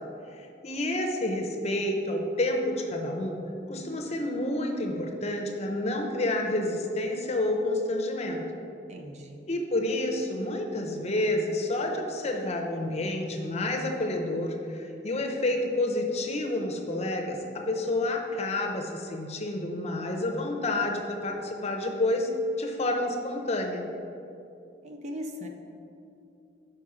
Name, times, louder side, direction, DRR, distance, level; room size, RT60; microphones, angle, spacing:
voice 1, 0.3-3.4 3.7-8.5 9.5-22.3 22.6-23.9, left 1 dB, 35° left, 2 dB, 0.6 m, -29 dB
voice 2, 8.9-9.5 24.8-25.5, equal, 40° right, 3 dB, 0.6 m, -39 dB
6.0 x 4.9 x 4.9 m, 2.7 s
head